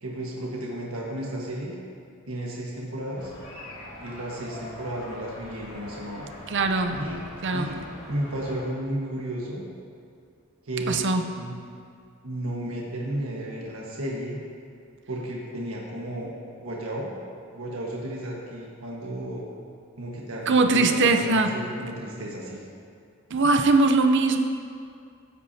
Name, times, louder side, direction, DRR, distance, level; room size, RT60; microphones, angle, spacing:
voice 1, 0.0-1.8 2.2-3.3 4.0-6.3 6.9-7.2 7.5-9.6 10.6-11.1 11.4-11.6 12.2-14.4 15.1-17.2 17.5-19.4 20.0-22.6, right 1 dB, 90° right, -3 dB, 1.5 m, -33 dB
sound 1, 3.2-8.6, left 1 dB, 85° left, 2.3 m, -43 dB
voice 2, 6.5-7.0 7.4-7.7 10.9-11.2 20.5-21.5 23.3-24.4, right 3 dB, 60° right, 6 dB, 0.7 m, -21 dB
15.0 x 8.3 x 2.8 m, 2.3 s
head